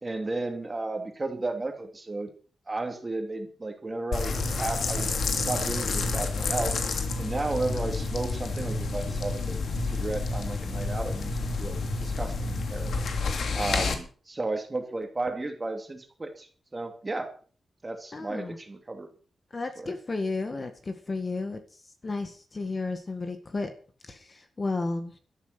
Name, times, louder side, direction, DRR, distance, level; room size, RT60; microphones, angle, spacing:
voice 1, 0.0-2.3 2.7-6.7 7.2-13.1 13.5-16.5 16.7-17.3 17.8-19.1 19.8-19.9, right 2 dB, 20° right, 5 dB, 2.7 m, -33 dB
sound 1, 4.1-13.9, left 3 dB, 60° left, 2.8 m, -29 dB
voice 2, 18.1-18.6 19.5-21.6 22.0-23.7 24.0-25.2, left 3 dB, 25° left, 7 dB, 1.8 m, -33 dB
13.0 x 12.0 x 6.0 m, 0.41 s
wide cardioid pair, 175°, 0 cm